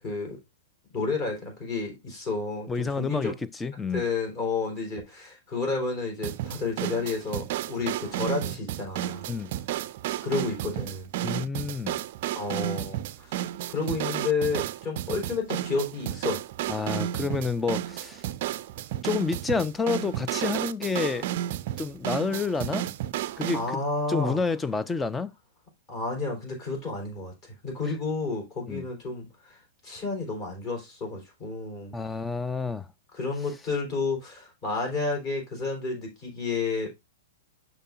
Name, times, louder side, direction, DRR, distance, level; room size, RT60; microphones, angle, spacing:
voice 1, 0.0-0.4 0.9-3.3 3.9-9.3 10.2-11.1 12.3-13.4 13.7-16.4 23.5-24.4 25.9-29.6 29.8-32.0 33.1-37.0, left 3 dB, 35° left, 3.8 m, -31 dB
voice 2, 2.7-3.3 3.6-4.0 9.3-9.6 11.2-12.0 16.7-18.2 19.0-21.3 21.8-22.9 23.4-23.8 24.1-25.3 28.7-28.9 31.9-32.9, left 4 dB, 10° left, 0.4 m, -29 dB
sound 1, 6.2-23.7, right 13 dB, 45° right, 0.4 m, -32 dB
12.0 x 4.1 x 2.5 m
figure-of-eight pair, 100°, 0 cm